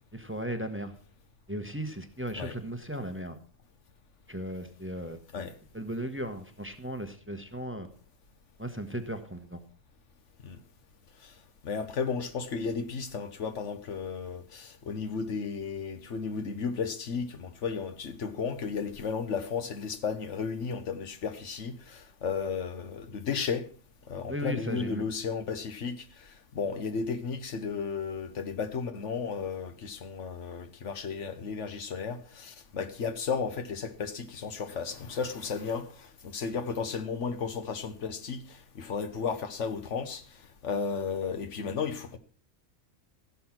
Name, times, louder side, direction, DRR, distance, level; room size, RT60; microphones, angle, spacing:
voice 1, 0.1-0.9 1.5-3.4 4.3-5.5 5.7-7.9 8.6-9.6 24.3-25.0, right 1 dB, 10° right, 1.1 m, -36 dB
voice 2, 11.6-23.7 24.1-40.2 40.6-42.2, left 5 dB, 75° left, 1.4 m, -34 dB
15.5 x 7.0 x 6.0 m
omnidirectional pair, 1.3 m